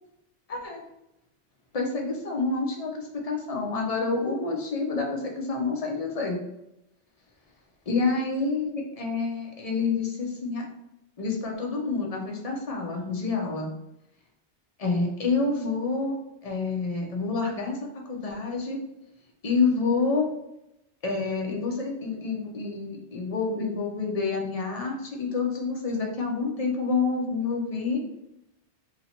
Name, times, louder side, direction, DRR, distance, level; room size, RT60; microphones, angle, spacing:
voice 1, 0.5-0.8 1.7-6.4 7.9-10.7 11.2-13.7 14.8-16.2 16.4-17.8 18.1-18.8 19.4-20.3 21.0-28.0, left 4 dB, 35° left, 0 dB, 0.8 m, -28 dB
2.9 x 2.8 x 4.2 m, 0.85 s
omnidirectional pair, 1.2 m